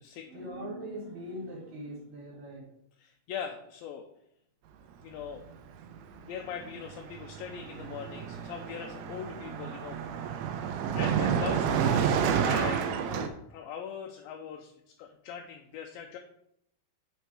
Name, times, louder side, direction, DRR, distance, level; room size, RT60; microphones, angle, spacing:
voice 1, 0.3-2.7, equal, 65° right, -3 dB, 3.0 m, -41 dB
voice 2, 3.0-4.1 5.0-5.4 6.1-10.0 10.9-16.2, left 7 dB, 80° left, 3 dB, 2.2 m, -41 dB
Car passing by, 5.8-6.0 6.3-13.3, right 8 dB, 90° right, 2.7 m, -30 dB
8.1 x 4.5 x 4.7 m, 0.73 s
omnidirectional pair, 4.6 m